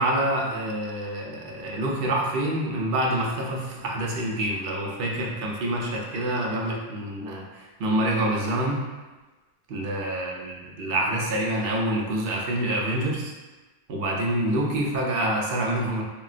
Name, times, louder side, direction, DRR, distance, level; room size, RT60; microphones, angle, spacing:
voice 1, 0.0-8.8 9.7-13.3 13.9-16.0, right 1 dB, 65° right, -1 dB, 0.7 m, -27 dB
3.3 x 2.2 x 2.4 m, 1.2 s
omnidirectional pair, 1.1 m